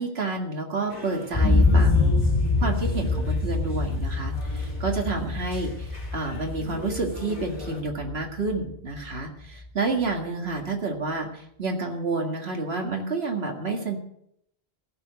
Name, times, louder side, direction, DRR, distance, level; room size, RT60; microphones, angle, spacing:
voice 1, 0.0-2.2 2.6-14.0, right 3 dB, 80° right, 2 dB, 2.2 m, -29 dB
sound 1, 0.9-7.8, left 3 dB, 40° left, 2.8 m, -41 dB
sound 2, 1.3-9.2 9.6-9.7, left 3 dB, 20° left, 1.0 m, -25 dB
16.0 x 6.3 x 7.9 m, 0.75 s
omnidirectional pair, 1.0 m